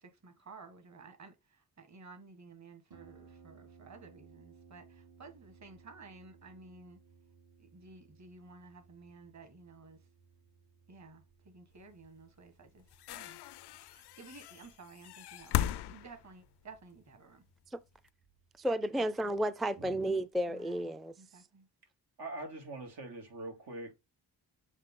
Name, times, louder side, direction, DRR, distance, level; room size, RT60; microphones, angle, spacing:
voice 1, 0.0-7.0 7.6-10.0 10.9-12.8 13.1-13.4 13.9-17.4 20.5-21.7, right 3 dB, 45° right, 1.6 m, -54 dB
Harp, 2.9-20.4, right 5 dB, 65° right, 1.7 m, -62 dB
sound 1, 12.1-12.2 12.8-17.1 18.1-18.2, left 12 dB, 80° left, 0.5 m, -38 dB
voice 2, 18.6-21.1, right 1 dB, ahead, 0.4 m, -32 dB
voice 3, 22.2-23.9, right 2 dB, 90° right, 2.8 m, -43 dB
7.4 x 3.6 x 3.8 m
cardioid pair, 95°, 39 cm